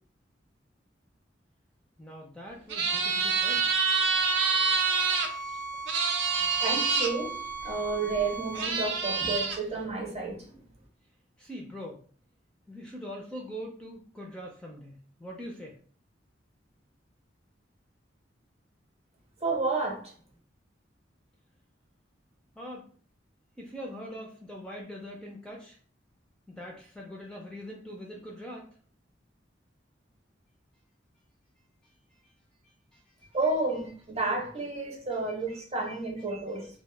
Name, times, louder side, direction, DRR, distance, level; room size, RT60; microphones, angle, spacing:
voice 1, 2.0-3.7 11.4-12.0 12.7-15.8 22.5-22.9 23.6-25.8 26.5-28.7 31.8-32.3 32.6-33.1 35.1-35.2 36.5-36.7, equal, 5° left, 0.3 m, -43 dB
sound 1, 2.7-5.3 5.9-7.1 8.1-8.2 8.5-9.6, right 5 dB, 75° right, 0.4 m, -26 dB
sound 2, 3.6-8.7, right 2 dB, 90° left, 0.8 m, -38 dB
voice 2, 6.6-10.6 19.4-20.1 33.3-36.7, right 3 dB, 35° right, 0.7 m, -31 dB
2.1 x 2.0 x 3.2 m
head